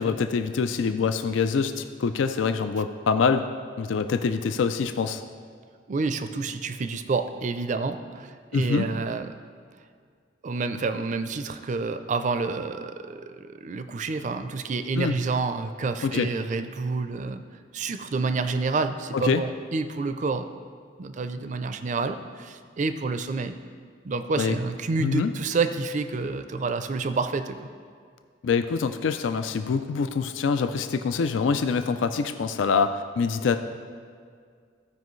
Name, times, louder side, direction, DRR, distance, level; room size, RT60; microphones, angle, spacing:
voice 1, 0.0-3.5 3.8-5.2 8.5-8.9 15.0-15.2 16.0-16.3 19.1-19.4 24.4-24.6 25.0-25.3 28.4-33.6, left 5 dB, 90° left, 9 dB, 0.4 m, -25 dB
voice 2, 5.9-9.3 10.4-17.4 17.7-20.5 21.0-23.6 24.0-27.6, right 4 dB, 40° right, 9 dB, 0.4 m, -28 dB
15.5 x 5.1 x 3.1 m, 2.1 s
head